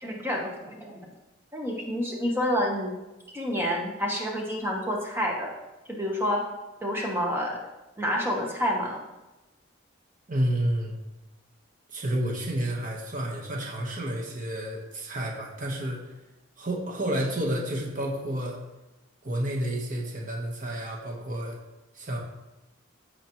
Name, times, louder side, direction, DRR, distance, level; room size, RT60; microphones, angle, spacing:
voice 1, 0.0-1.0 1.5-2.9 3.3-5.5 5.9-6.4 6.8-7.6 8.0-9.0, equal, 10° right, -1 dB, 1.1 m, -28 dB
voice 2, 10.3-10.9 11.9-16.1 16.6-18.6 19.2-21.6 21.9-22.2, right 1 dB, 40° right, -1 dB, 1.3 m, -30 dB
14.5 x 5.0 x 3.1 m, 1.0 s
head